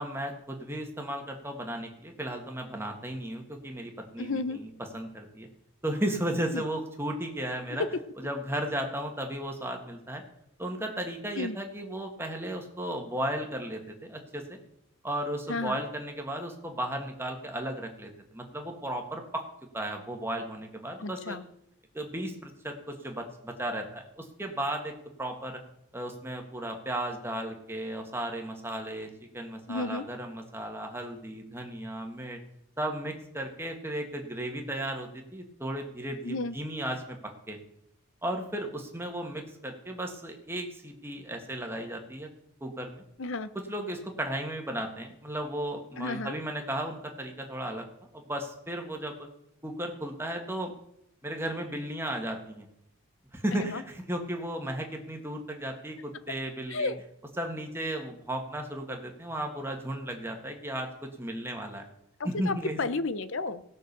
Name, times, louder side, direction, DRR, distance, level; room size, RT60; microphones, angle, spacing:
voice 1, 0.0-5.5 5.8-7.8 8.2-10.2 10.6-14.6 15.0-19.4 19.7-21.4 21.9-25.6 25.9-32.4 32.8-37.6 38.2-42.3 42.6-43.0 43.7-47.9 48.1-49.3 49.6-50.7 51.2-52.7 53.3-56.9 57.4-61.8 62.2-62.8, right 1 dB, 10° right, 3 dB, 1.7 m, -35 dB
voice 2, 4.2-4.6 6.5-6.6 7.8-7.9 11.4-11.6 15.5-15.8 21.0-21.4 29.7-30.1 36.2-36.5 43.2-43.5 46.0-46.3 53.5-53.8 56.7-57.0 62.4-63.6, left 3 dB, 60° left, 14 dB, 0.8 m, -32 dB
17.5 x 6.4 x 6.8 m, 0.81 s
head